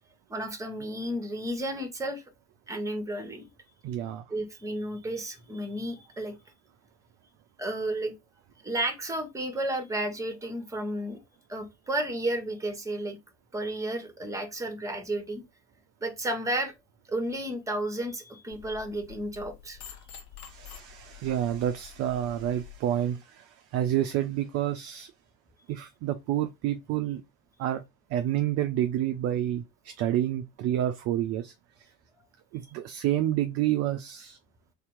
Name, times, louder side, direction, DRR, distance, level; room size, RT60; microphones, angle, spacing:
voice 1, 0.3-2.2 2.7-3.5 4.3-6.3 7.6-8.1 8.6-11.2 11.5-13.2 13.5-15.4 16.0-16.7 17.1-19.8, right 1 dB, 5° right, 1.0 m, -32 dB
voice 2, 3.8-4.2 20.5-25.1 25.7-27.2 27.6-27.8 28.1-31.5 32.5-34.4, right 12 dB, 35° right, 0.4 m, -29 dB
sound 1, 18.5-22.8, left 9 dB, 60° left, 1.1 m, -48 dB
3.6 x 2.8 x 3.5 m
figure-of-eight pair, 70°, 46 cm